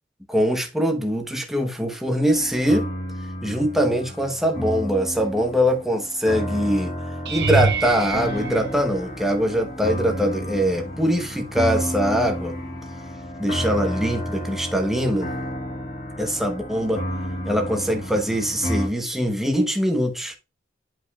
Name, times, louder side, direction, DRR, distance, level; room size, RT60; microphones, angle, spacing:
voice 1, 0.3-2.9 3.4-6.9 7.3-12.5 13.4-15.3 16.2-17.0 17.4-20.3, equal, ahead, 1.0 m, -22 dB
sound 1, 2.2-18.9, equal, 45° left, 1.5 m, -31 dB
sound 2, 7.3-9.5 10.2-10.7 11.0-11.2 15.5-15.6, right 4 dB, 60° right, 0.8 m, -27 dB
10.5 x 5.0 x 2.4 m
head